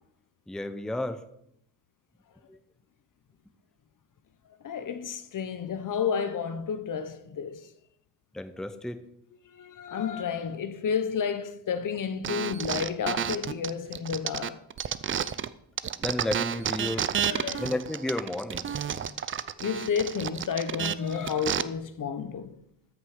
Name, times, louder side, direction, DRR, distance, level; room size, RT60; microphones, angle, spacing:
voice 1, 0.5-1.2 2.5-2.6 8.3-9.0 16.0-17.1 17.6-18.7, left 1 dB, ahead, 0.8 m, -32 dB
voice 2, 4.6-7.7 9.4-14.6 16.8-17.7 19.6-22.6, left 7 dB, 45° left, 1.0 m, -31 dB
sound 1, 12.2-15.5 15.8-21.6, right 8 dB, 30° right, 0.5 m, -31 dB
13.5 x 6.3 x 5.0 m
cardioid pair, 85°, 42 cm